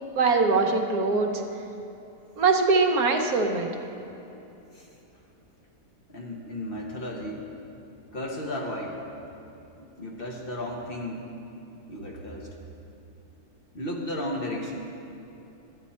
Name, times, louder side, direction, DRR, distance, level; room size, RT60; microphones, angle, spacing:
voice 1, 0.2-1.3 2.4-3.7, right 4 dB, 70° right, 4 dB, 1.2 m, -22 dB
voice 2, 6.1-7.4 8.1-9.0 10.0-11.3 11.9-12.5 13.7-15.1, left 1 dB, 40° left, -1 dB, 1.1 m, -34 dB
11.5 x 9.2 x 4.2 m, 2.9 s
omnidirectional pair, 1.7 m